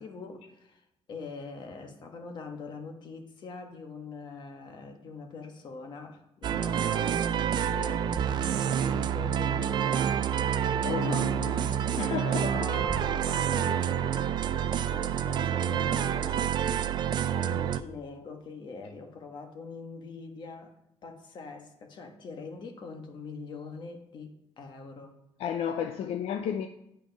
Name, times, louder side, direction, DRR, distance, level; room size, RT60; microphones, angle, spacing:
voice 1, 0.0-10.6 11.0-11.7 12.3-16.7 17.3-20.7 21.0-25.2, left 4 dB, 45° left, 1.3 m, -43 dB
sound 1, 6.4-17.8, right 9 dB, 45° right, 0.4 m, -28 dB
voice 2, 10.8-11.6 12.0-12.6 25.4-26.7, left 8 dB, 70° left, 0.5 m, -32 dB
9.1 x 5.1 x 5.2 m
cardioid pair, 155°, 11 cm